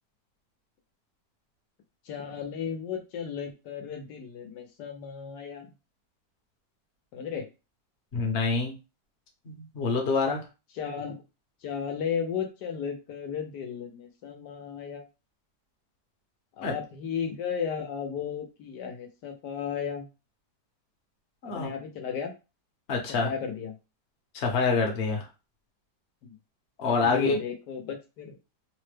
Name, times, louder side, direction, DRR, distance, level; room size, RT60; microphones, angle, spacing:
voice 1, 2.0-5.7 7.1-7.5 10.7-11.2 11.6-15.0 16.6-20.1 21.4-22.3 23.2-23.8 26.2-26.4 26.9-28.4, left 7 dB, 80° left, 4 dB, 1.2 m, -34 dB
voice 2, 8.1-8.7 9.5-10.4 16.6-16.7 21.4-21.7 22.9-23.3 24.3-25.3 26.8-27.4, left 4 dB, 50° left, 1 dB, 0.9 m, -26 dB
3.3 x 2.1 x 3.2 m, 0.29 s
omnidirectional pair, 1.8 m